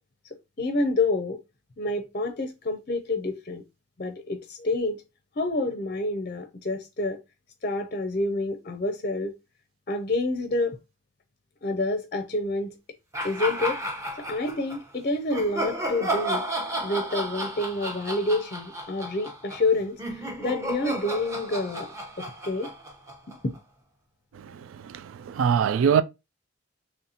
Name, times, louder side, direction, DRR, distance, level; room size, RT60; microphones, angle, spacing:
voice 1, 0.6-1.4 1.8-3.6 4.0-5.0 5.4-7.2 7.6-9.3 9.9-10.8 11.6-12.7 13.2-13.8 14.3-16.4 16.8-20.0 20.4-21.9 22.4-22.7, left 2 dB, 45° left, 0.5 m, -28 dB
sound 1, 13.1-14.8 15.3-23.6, right 1 dB, 15° right, 0.8 m, -33 dB
voice 2, 24.3-26.0, right 7 dB, 90° right, 0.3 m, -24 dB
4.1 x 3.0 x 2.8 m
head